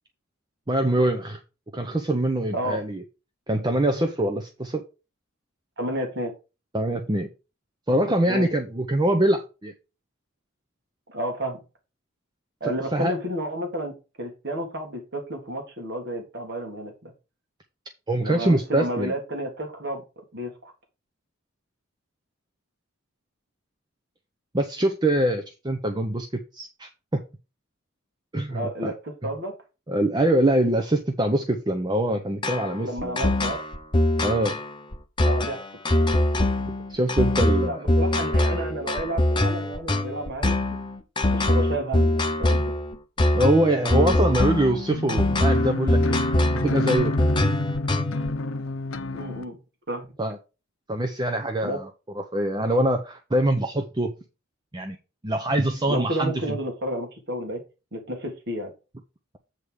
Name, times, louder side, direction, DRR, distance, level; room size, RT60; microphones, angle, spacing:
voice 1, 0.7-1.4 1.7-3.0 3.5-4.8 6.7-7.3 7.9-9.7 12.9-13.1 18.1-19.1 24.5-26.3 26.5-26.9 28.3-28.9 29.2-29.3 29.9-33.4 34.2-34.6 36.9-37.9 43.3-46.2 46.5-47.1 50.2-50.4 50.9-51.9 52.1-54.1 54.7-55.0 55.2-56.6, right 1 dB, 20° right, 6 dB, 0.7 m, -24 dB
voice 2, 5.8-6.3 8.3-8.5 11.1-11.6 12.6-17.1 18.2-20.0 20.3-20.7 28.5-29.5 32.8-33.6 35.3-35.6 35.9-36.1 37.6-40.6 41.3-42.6 49.1-49.6 49.9-50.1 51.6-51.8 55.9-57.6 57.9-58.7, right 1 dB, 55° right, 2 dB, 1.8 m, -31 dB
sound 1, 32.4-48.3, left 1 dB, 25° left, 0.8 m, -23 dB
sound 2, 44.9-49.4, left 2 dB, 80° left, 0.7 m, -28 dB
8.2 x 3.6 x 6.3 m, 0.30 s
head